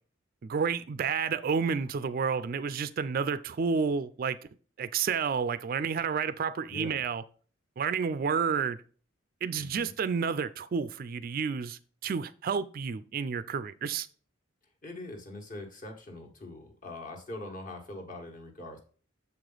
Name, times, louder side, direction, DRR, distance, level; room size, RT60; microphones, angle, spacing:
voice 1, 0.4-4.4 4.8-7.2 7.8-8.8 9.4-14.1, right 6 dB, 45° right, 0.3 m, -30 dB
voice 2, 6.7-7.0 9.6-9.9 14.8-18.8, left 2 dB, 40° left, 1.4 m, -42 dB
7.0 x 4.9 x 3.9 m
head